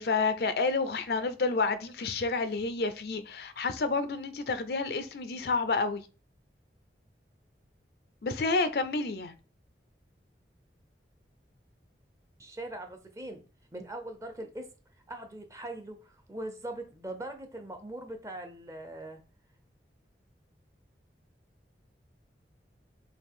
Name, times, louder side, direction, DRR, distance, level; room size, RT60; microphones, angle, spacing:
voice 1, 0.0-6.0 8.2-9.4, left 3 dB, 60° left, 0.5 m, -29 dB
voice 2, 12.4-13.4 13.7-14.7 15.1-19.2, right 1 dB, 15° right, 0.6 m, -41 dB
5.7 x 2.4 x 3.6 m
head